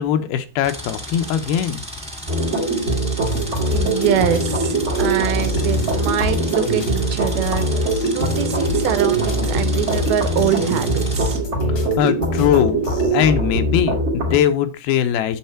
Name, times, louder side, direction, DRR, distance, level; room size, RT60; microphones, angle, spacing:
voice 1, 0.0-1.8 11.7-12.8 13.1-15.4, left 10 dB, 80° left, 9 dB, 2.7 m, -20 dB
sound 1, 0.6-11.4, equal, 5° right, 1.0 m, -34 dB
sound 2, 2.3-14.4, right 1 dB, 35° right, 1.0 m, -22 dB
sound 3, 3.2-13.2, left 3 dB, 50° left, 1.4 m, -31 dB
voice 2, 3.7-11.4, right 10 dB, 80° right, 9 dB, 2.9 m, -24 dB
9.1 x 6.6 x 4.3 m, 0.31 s
omnidirectional pair, 4.4 m